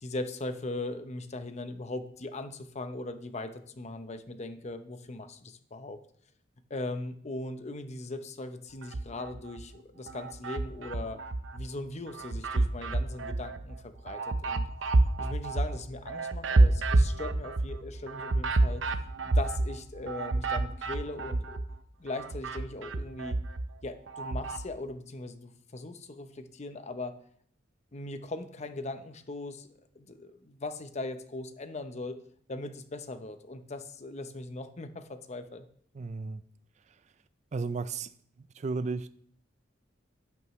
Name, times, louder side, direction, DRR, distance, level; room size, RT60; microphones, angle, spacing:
voice 1, 0.0-6.0 6.7-11.2 11.5-14.7 15.2-18.8 19.2-21.6 22.0-23.4 23.8-27.2 27.9-32.2 32.5-35.7, left 2 dB, 35° left, 0.8 m, -39 dB
sound 1, 8.8-9.6 10.1-11.7 12.1-21.8 22.1-24.6, right 2 dB, 80° right, 0.7 m, -29 dB
voice 2, 36.0-36.4 37.5-38.1 38.6-39.1, right 4 dB, 40° right, 0.4 m, -33 dB
11.0 x 10.5 x 3.2 m
head